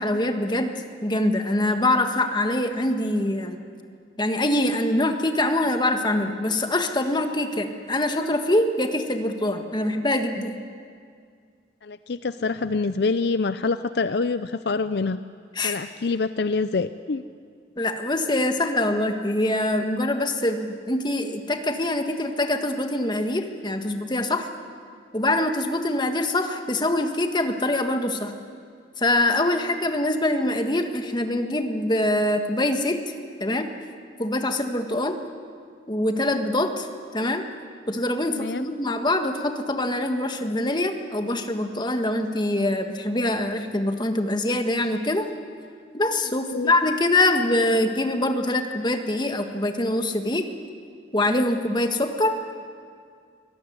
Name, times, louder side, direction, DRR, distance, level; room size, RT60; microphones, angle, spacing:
voice 1, 0.0-3.6 4.2-10.6 15.5-15.7 17.8-24.5 25.1-28.3 29.0-33.0 33.4-33.7 34.2-35.2 35.9-37.5 37.9-45.3 45.9-50.4 51.1-52.4, left 1 dB, 25° left, 6 dB, 1.6 m, -24 dB
voice 2, 11.8-15.2 15.6-17.2 38.3-38.6 46.5-46.7, left 4 dB, 60° left, 13 dB, 0.5 m, -26 dB
24.0 x 19.0 x 9.6 m, 2.2 s
head